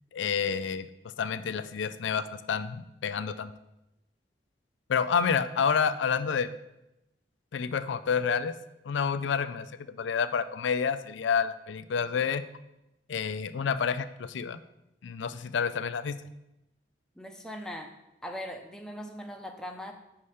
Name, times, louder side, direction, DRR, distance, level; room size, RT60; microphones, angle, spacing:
voice 1, 0.1-0.9 1.2-3.5 4.9-6.5 7.5-8.5 8.8-9.7 10.0-12.4 13.1-14.6 15.0-16.2, left 6 dB, 85° left, 13 dB, 0.4 m, -29 dB
voice 2, 17.2-17.9 18.2-19.9, equal, 5° left, 3 dB, 0.5 m, -40 dB
5.4 x 4.9 x 5.6 m, 0.91 s
head